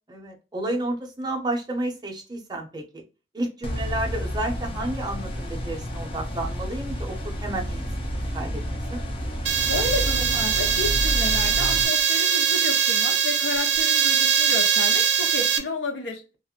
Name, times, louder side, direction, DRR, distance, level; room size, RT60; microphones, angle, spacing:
voice 1, 0.1-3.0 3.3-7.9 8.3-9.0, right 1 dB, 25° right, 0.6 m, -31 dB
sound 1, 3.6-11.9, equal, 30° left, 0.6 m, -30 dB
sound 2, 9.5-15.6, right 7 dB, 65° right, 0.4 m, -22 dB
voice 2, 9.6-16.2, left 3 dB, 85° left, 0.8 m, -31 dB
2.4 x 2.0 x 2.7 m
head